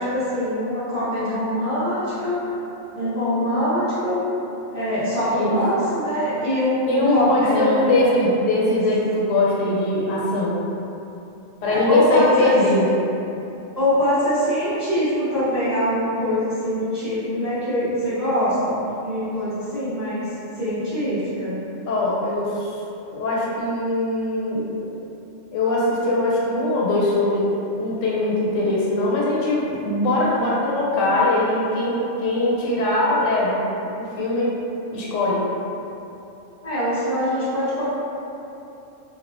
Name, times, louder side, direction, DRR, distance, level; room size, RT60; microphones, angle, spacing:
voice 1, 0.0-2.4 2.9-4.2 4.7-8.0 11.6-12.5 13.8-21.6 36.6-37.8, equal, 15° right, -13 dB, 0.6 m, -23 dB
voice 2, 6.9-10.6 11.6-13.0 21.9-22.7 23.1-25.0 25.5-27.4 27.7-33.6 34.0-34.5 34.9-35.4, left 2 dB, 85° left, -5 dB, 0.9 m, -21 dB
2.7 x 2.3 x 2.4 m, 2.9 s
omnidirectional pair, 1.3 m